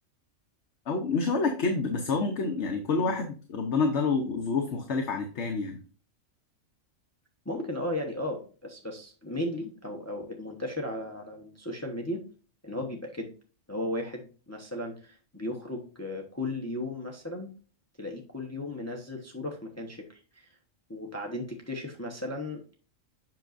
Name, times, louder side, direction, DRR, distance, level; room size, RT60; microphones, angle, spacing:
voice 1, 0.9-5.8, left 4 dB, 60° left, 4 dB, 1.1 m, -28 dB
voice 2, 7.4-12.2 12.6-13.3 13.7-17.5 18.0-20.5 20.9-22.7, left 1 dB, 15° left, 1 dB, 0.9 m, -35 dB
7.6 x 6.2 x 2.6 m, 0.37 s
omnidirectional pair, 1.4 m